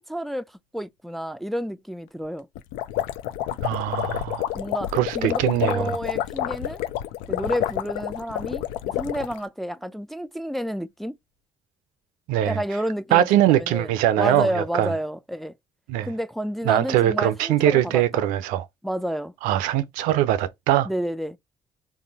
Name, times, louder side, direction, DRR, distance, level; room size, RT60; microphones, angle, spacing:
voice 1, 0.0-2.5 4.5-6.8 7.3-11.2 12.4-15.6 16.0-18.3 18.8-19.3 20.8-21.4, equal, ahead, 0.4 m, -30 dB
sound 1, 2.6-9.4, left 13 dB, 75° left, 0.4 m, -29 dB
voice 2, 3.6-4.5 4.9-5.9 12.3-12.6 13.1-14.9 15.9-16.1 16.7-18.7 19.4-20.9, right 12 dB, 75° right, 0.4 m, -22 dB
3.5 x 2.7 x 4.1 m
hypercardioid pair, 50°, 14 cm